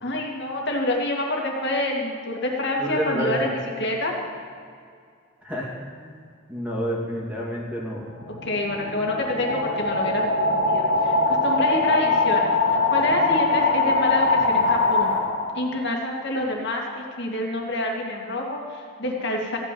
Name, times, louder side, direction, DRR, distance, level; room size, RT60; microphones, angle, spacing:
voice 1, 0.0-4.1 8.4-15.2 15.5-19.6, left 1 dB, 55° left, 0 dB, 2.3 m, -27 dB
voice 2, 2.8-3.5 5.4-5.7 6.0-6.2 6.5-8.0, equal, 5° right, -4 dB, 2.4 m, -29 dB
sound 1, 8.0-15.8, left 3 dB, 85° left, 3.2 m, -22 dB
15.0 x 6.1 x 9.5 m, 2.3 s
head